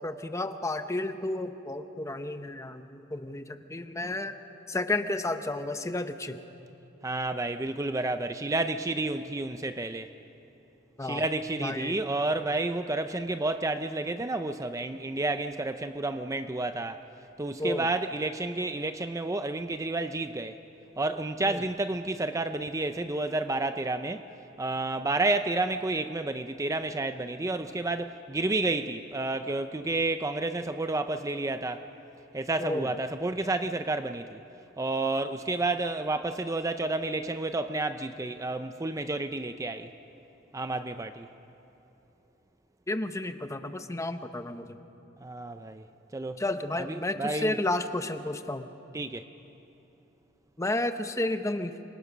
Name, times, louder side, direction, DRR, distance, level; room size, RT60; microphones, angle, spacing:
voice 1, 0.0-4.3 4.7-6.4 11.0-11.2 11.6-12.0 17.6-17.9 21.5-21.6 32.6-32.9 42.9-44.8 46.4-48.7 50.6-51.7, left 2 dB, 15° left, 8 dB, 0.9 m, -32 dB
voice 2, 7.0-10.1 11.0-17.0 17.4-20.6 21.0-24.3 24.6-31.8 32.3-34.4 34.8-39.9 40.5-41.3 45.2-45.8 46.1-46.4 46.8-47.6 48.9-49.2, right 2 dB, 15° right, 9 dB, 0.5 m, -30 dB
27.5 x 23.0 x 6.1 m, 3.0 s
head